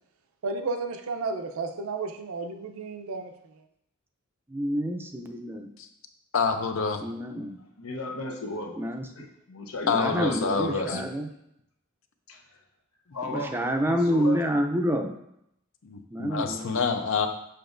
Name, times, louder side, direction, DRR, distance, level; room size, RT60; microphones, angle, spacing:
voice 1, 0.4-3.3, right 3 dB, 80° right, 6 dB, 0.6 m, -32 dB
voice 2, 4.5-5.7 7.0-7.6 8.8-9.1 9.8-11.3 13.2-15.1 16.1-16.8, equal, 10° right, 4 dB, 0.5 m, -28 dB
voice 3, 6.3-7.0 9.9-11.0 15.8-17.3, left 5 dB, 65° left, 6 dB, 0.6 m, -27 dB
voice 4, 7.5-8.8 9.2-11.0 12.3-12.4 13.1-14.4 17.2-17.3, left 2 dB, 85° left, 2 dB, 1.0 m, -36 dB
6.7 x 5.9 x 2.6 m, 0.79 s
head